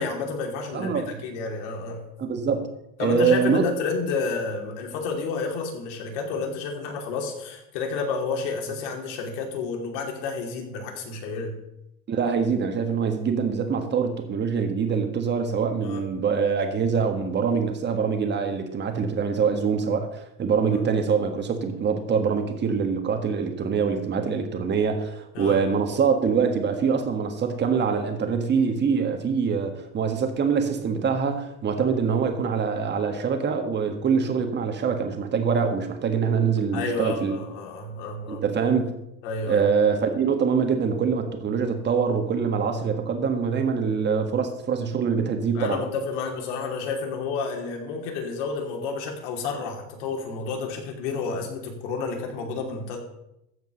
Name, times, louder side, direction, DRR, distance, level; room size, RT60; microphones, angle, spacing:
voice 1, 0.0-2.0 3.0-11.5 15.8-16.0 20.7-20.8 25.3-25.6 36.7-38.4 39.2-39.6 45.5-53.0, left 4 dB, 90° left, 2 dB, 2.9 m, -30 dB
voice 2, 0.7-1.1 2.2-2.7 3.0-3.6 12.1-37.4 38.3-38.9 39.5-45.8, right 6 dB, 30° right, 6 dB, 1.6 m, -24 dB
14.5 x 5.2 x 6.4 m, 0.84 s
cardioid pair, 135°, 35 cm